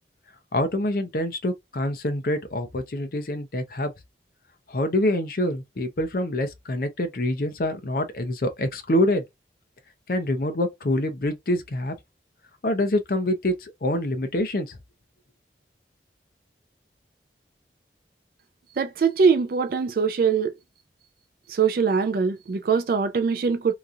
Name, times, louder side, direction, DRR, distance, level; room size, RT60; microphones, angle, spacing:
voice 1, 0.5-3.9 4.7-9.2 10.1-12.0 12.6-14.8, left 1 dB, 50° left, 0.6 m, -26 dB
voice 2, 18.8-20.5 21.5-23.7, right 5 dB, 50° right, 0.3 m, -22 dB
2.9 x 2.4 x 2.5 m
head